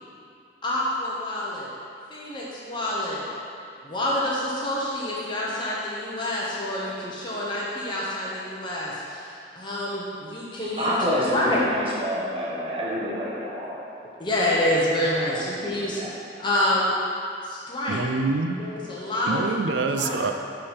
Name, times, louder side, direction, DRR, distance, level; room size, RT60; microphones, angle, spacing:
voice 1, 0.6-1.7 2.1-3.2 3.8-11.6 14.1-16.0 16.4-16.9 17.4-18.0 18.6-19.5 19.8-20.2, left 1 dB, 25° left, -6 dB, 0.9 m, -27 dB
voice 2, 10.8-13.8 15.3-15.4 15.9-16.1, equal, 30° right, -6 dB, 1.4 m, -27 dB
voice 3, 17.9-18.6 19.3-20.3, right 3 dB, 75° right, 6 dB, 0.5 m, -25 dB
11.5 x 3.9 x 4.3 m, 2.5 s
head